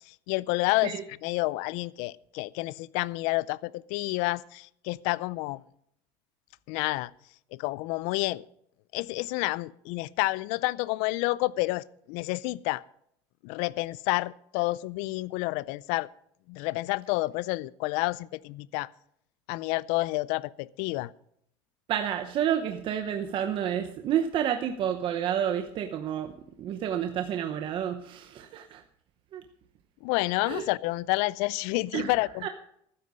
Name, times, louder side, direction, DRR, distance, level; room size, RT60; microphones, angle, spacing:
voice 1, 0.1-0.9 1.2-5.6 6.7-7.1 7.5-8.4 8.9-12.8 13.4-16.1 16.5-18.9 19.5-21.1 30.0-32.5, left 21 dB, 70° left, 0.5 m, -29 dB
voice 2, 21.9-28.8 29.3-29.4 30.4-30.6 31.9-32.5, right 9 dB, 45° right, 0.8 m, -30 dB
13.0 x 9.9 x 5.4 m
supercardioid pair, 125°, 12 cm